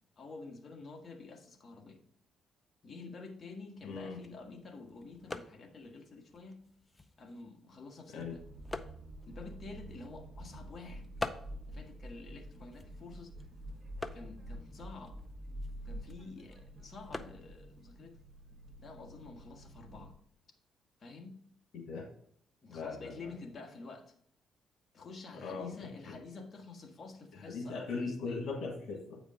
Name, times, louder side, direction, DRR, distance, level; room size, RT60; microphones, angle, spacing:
voice 1, 0.2-2.0 2.8-6.6 7.2-8.4 9.2-11.1 11.7-13.5 14.1-15.2 15.8-18.2 18.8-20.2 21.0-21.4 22.6-24.1 24.9-28.4, left 3 dB, 40° left, 1.6 m, -49 dB
voice 2, 3.8-4.2 8.1-8.3 21.7-22.1 22.7-23.1 25.4-25.7 27.4-29.2, left 4 dB, 80° left, 1.6 m, -39 dB
sound 1, 3.8-19.3, left 2 dB, 20° left, 0.6 m, -48 dB
sound 2, 8.2-20.1, right 1 dB, 55° right, 1.1 m, -48 dB
8.6 x 5.0 x 3.7 m
cardioid pair, 90°, 0 cm